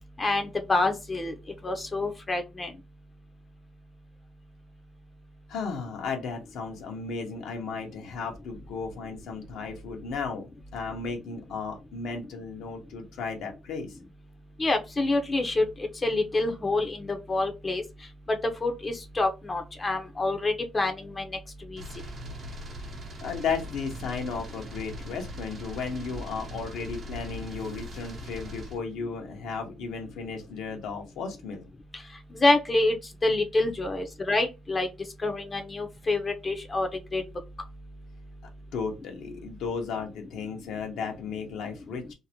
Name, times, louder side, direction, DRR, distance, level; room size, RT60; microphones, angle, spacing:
voice 1, 0.2-1.3 1.6-2.7 14.6-15.6 16.0-17.8 18.3-21.3 21.7-21.8 32.3-33.0 33.2-34.9 35.2-37.2, left 2 dB, 30° left, 6 dB, 0.5 m, -27 dB
voice 2, 5.5-10.4 10.7-14.0 23.2-31.7 38.7-42.1, left 5 dB, 85° left, 3 dB, 0.7 m, -34 dB
sound 1, 21.8-28.8, equal, 55° right, 0.7 m, -40 dB
2.6 x 2.0 x 2.8 m, 0.26 s
cardioid pair, 90°, 0 cm